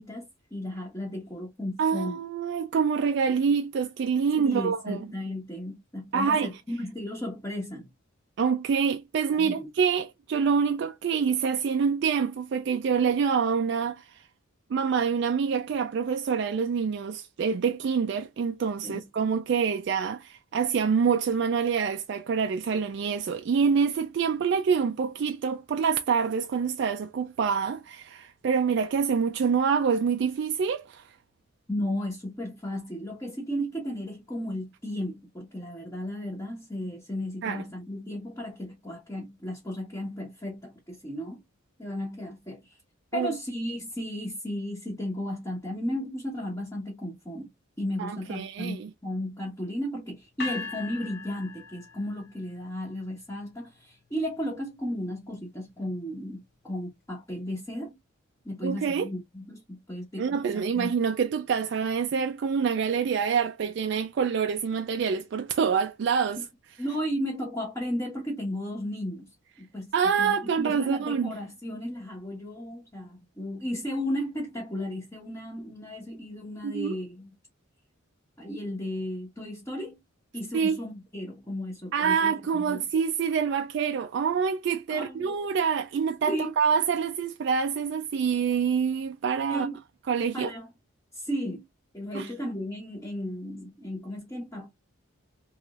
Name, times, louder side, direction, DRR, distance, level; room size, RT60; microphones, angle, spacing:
voice 1, 0.0-2.2 4.4-7.9 9.3-9.7 18.8-19.0 31.7-41.4 41.8-42.8 43.1-47.5 47.8-58.0 58.4-60.9 66.8-77.3 78.4-80.0 80.3-82.8 84.9-85.4 85.9-86.5 89.5-89.8 90.3-90.7 91.1-91.6 91.9-94.7, equal, 15° left, 1.1 m, -34 dB
voice 2, 1.8-5.1 6.1-6.5 8.4-14.2 14.7-31.2 37.4-37.6 43.1-43.3 48.0-48.9 58.6-59.1 60.2-66.4 69.9-71.3 76.6-77.0 80.5-80.8 81.9-89.7 90.1-90.5 92.1-92.3, right 6 dB, 55° right, 0.3 m, -26 dB
sound 1, 50.4-52.5, left 4 dB, 55° left, 0.7 m, -39 dB
3.1 x 3.0 x 2.4 m
head